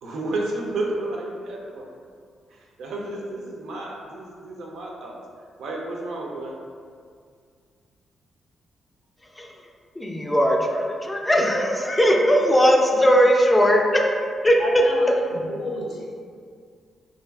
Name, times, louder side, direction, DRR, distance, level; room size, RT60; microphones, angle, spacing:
voice 1, 0.0-1.9 2.5-5.2 5.6-6.6, right 2 dB, 80° right, -1 dB, 0.4 m, -31 dB
voice 2, 10.0-14.0 14.4-14.6, equal, 15° left, 0 dB, 0.3 m, -19 dB
voice 3, 14.6-16.1, left 1 dB, 75° left, -3 dB, 0.5 m, -30 dB
2.4 x 2.3 x 2.3 m, 2.1 s
cardioid pair, 65°, 0 cm